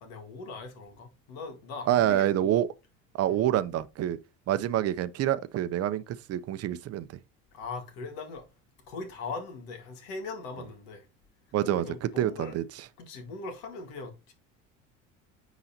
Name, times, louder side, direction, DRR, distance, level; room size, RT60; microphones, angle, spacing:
voice 1, 0.0-2.6 3.3-3.4 7.5-8.5 8.9-11.1 11.6-12.6 13.0-14.3, left 3 dB, 80° left, 1.9 m, -40 dB
voice 2, 1.9-2.7 3.1-4.2 4.5-7.1 11.5-11.9 12.2-12.6, right 12 dB, 50° right, 0.6 m, -27 dB
9.7 x 4.0 x 2.8 m
supercardioid pair, 105°, 33 cm